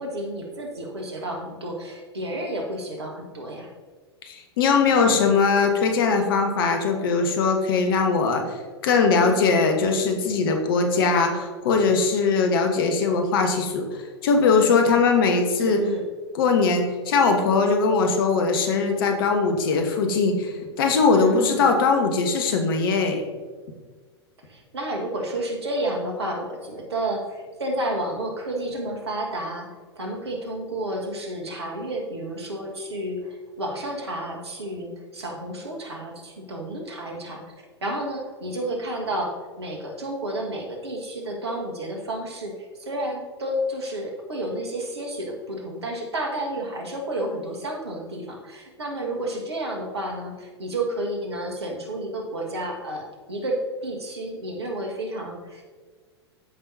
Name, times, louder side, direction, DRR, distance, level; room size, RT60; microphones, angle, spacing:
voice 1, 0.0-3.7 9.2-9.8 15.6-16.1 21.1-21.7 24.5-37.4 37.8-55.6, right 1 dB, 70° right, 1 dB, 1.7 m, -31 dB
voice 2, 4.2-8.4 8.8-13.8 14.2-15.8 16.3-23.2, left 4 dB, 55° left, 5 dB, 1.2 m, -21 dB
13.5 x 5.7 x 2.7 m, 1.5 s
figure-of-eight pair, 95°, 14 cm